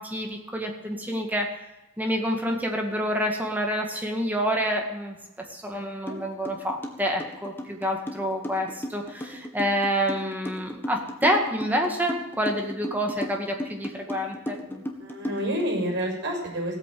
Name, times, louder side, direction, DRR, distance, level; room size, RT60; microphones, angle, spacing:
voice 1, 0.0-1.6 2.0-5.2 5.5-14.6, equal, 10° right, 2 dB, 2.1 m, -28 dB
sound 1, 6.1-6.2 6.4-15.7, equal, 10° left, 1.6 m, -35 dB
voice 2, 14.7-16.7, equal, 55° right, 0 dB, 6.6 m, -29 dB
16.5 x 8.6 x 7.8 m, 0.99 s
head